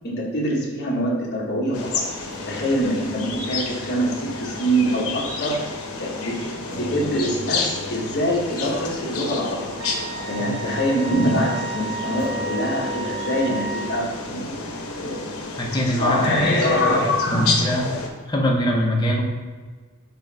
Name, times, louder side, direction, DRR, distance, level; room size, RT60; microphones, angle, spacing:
voice 1, 0.0-2.0 2.5-5.6 6.0-9.7 10.2-14.6 15.0-15.3 15.9-17.6, equal, 50° left, -4 dB, 1.3 m, -24 dB
sound 1, 1.7-18.1, left 3 dB, 80° left, 0.9 m, -31 dB
sound 2, 2.3-10.8 11.1-11.3 12.2-18.7, left 4 dB, 25° right, 1.4 m, -42 dB
Wind instrument woodwind instrument, 9.8-14.1, right 4 dB, 55° right, 0.5 m, -33 dB
voice 2, 15.6-16.3 16.6-16.7 17.3-17.9 18.3-19.3, equal, 20° left, -1 dB, 0.9 m, -22 dB
6.7 x 3.1 x 4.7 m, 1.4 s
head